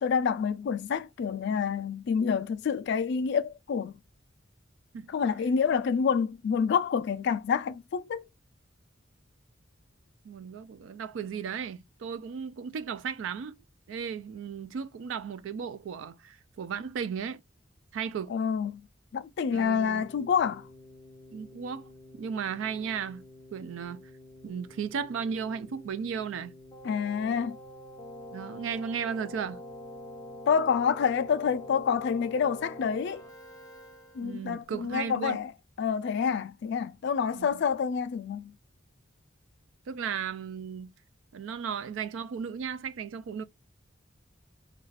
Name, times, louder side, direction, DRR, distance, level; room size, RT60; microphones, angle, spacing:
voice 1, 0.0-3.9 5.1-8.2 18.3-18.8 19.1-20.6 26.8-27.6 30.5-33.2 34.2-35.5 35.8-38.5, left 6 dB, 60° left, 0.3 m, -28 dB
voice 2, 10.2-13.6 13.9-17.4 17.9-18.3 19.5-20.0 21.3-21.8 22.2-23.2 23.5-24.0 24.4-26.5 28.3-29.6 34.2-35.4 37.3-37.6 39.9-40.9 41.3-43.4, right 7 dB, 75° right, 0.3 m, -35 dB
Keyboard (musical), 19.5-34.6, left 1 dB, 20° left, 0.7 m, -47 dB
2.4 x 2.3 x 3.2 m
head